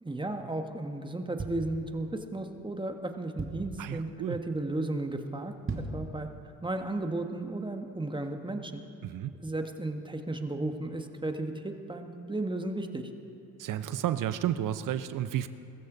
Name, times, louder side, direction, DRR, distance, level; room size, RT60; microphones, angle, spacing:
voice 1, 0.0-6.3 6.6-8.8 9.4-13.1, right 2 dB, 15° right, 5 dB, 1.5 m, -34 dB
sound 1, 1.2-2.3 2.8-2.9 3.1-3.9 4.3-4.6 4.9-5.0 5.5-6.1 6.5-6.6, right 3 dB, 35° right, 2.2 m, -37 dB
voice 2, 3.8-4.4 9.0-9.3 13.6-15.5, right 11 dB, 60° right, 12 dB, 0.8 m, -31 dB
21.5 x 14.0 x 4.0 m, 3.0 s
hypercardioid pair, 55°, 36 cm